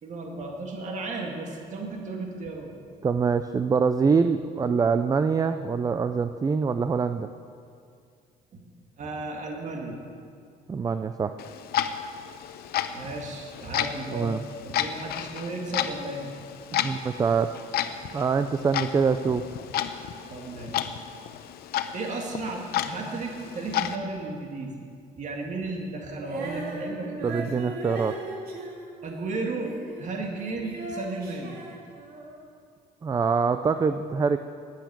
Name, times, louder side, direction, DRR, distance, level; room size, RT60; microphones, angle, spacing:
voice 1, 0.0-2.7 8.5-8.7 9.0-10.0 12.9-14.4 14.6-16.3 18.6-18.7 20.3-20.9 21.9-24.8 25.2-27.5 29.0-29.7 30.0-31.6, right 2 dB, 45° right, 1 dB, 2.0 m, -34 dB
voice 2, 3.0-7.3 10.7-11.4 14.1-14.4 16.7-17.5 18.1-19.5 27.2-28.2 33.0-34.4, right 5 dB, 20° right, 10 dB, 0.4 m, -24 dB
Clock, 11.4-24.0, left 10 dB, 65° left, 0.7 m, -32 dB
Female singing, 26.2-30.1 30.3-32.5, right 2 dB, 60° right, 2.4 m, -38 dB
10.5 x 9.0 x 8.6 m, 2.3 s
cardioid pair, 110°, 17 cm